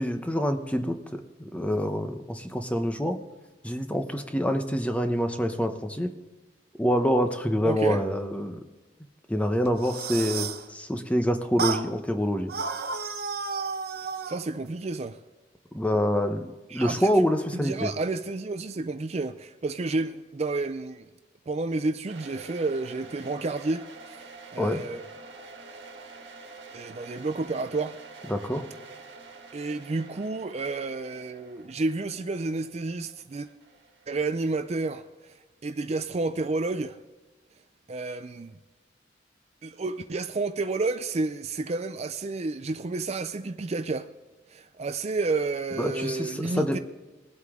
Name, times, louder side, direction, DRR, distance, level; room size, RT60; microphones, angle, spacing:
voice 1, 0.0-3.2 3.6-6.1 6.8-8.6 9.3-12.5 15.7-17.9 24.6-24.8 28.3-28.6 45.8-46.8, equal, 10° left, 0.9 m, -26 dB
voice 2, 7.6-8.0 14.3-15.2 16.7-17.1 17.5-21.1 21.5-23.9 24.1-25.0 26.7-28.0 29.5-33.5 34.1-37.0 37.9-38.6 39.6-44.1 44.5-46.8, right 3 dB, 35° right, 0.4 m, -30 dB
sound 1, 9.7-10.7 11.6-11.9 12.5-14.4, right 5 dB, 60° right, 0.8 m, -31 dB
sound 2, 22.1-34.9, right 3 dB, 75° right, 1.7 m, -47 dB
20.0 x 8.2 x 3.7 m
head